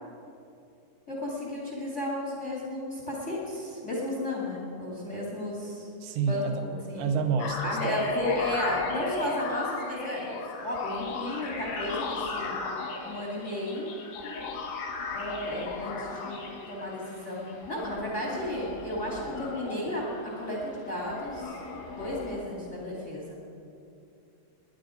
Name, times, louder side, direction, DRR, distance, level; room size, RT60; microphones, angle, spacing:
voice 1, 1.1-5.9 6.2-7.2 7.6-10.4 10.6-12.6 13.0-13.9 15.1-16.4 16.7-21.6 22.0-23.4, left 1 dB, 35° left, -2 dB, 1.1 m, -33 dB
voice 2, 6.0-6.5 7.0-7.9, right 5 dB, 75° right, 6 dB, 2.8 m, -28 dB
sound 1, 7.4-22.4, left 3 dB, 80° left, 4.8 m, -36 dB
20.0 x 10.5 x 5.1 m, 2.6 s
omnidirectional pair, 5.7 m